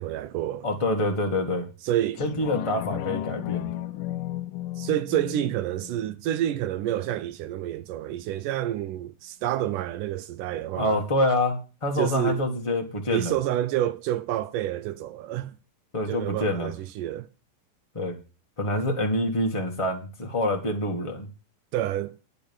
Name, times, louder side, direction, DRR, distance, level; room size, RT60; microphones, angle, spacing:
voice 1, 0.0-0.7 1.8-2.2 4.8-11.0 12.0-12.4 13.1-15.6 16.1-17.3 21.7-22.1, right 12 dB, 75° right, 2.0 m, -28 dB
voice 2, 0.6-1.7 2.2-3.7 10.7-13.4 15.9-16.7 17.9-18.2 18.6-21.3, left 1 dB, 45° left, 0.4 m, -26 dB
sound 1, 2.2-7.2 7.6-7.7, left 14 dB, 75° left, 2.3 m, -35 dB
9.7 x 6.8 x 7.1 m
omnidirectional pair, 4.2 m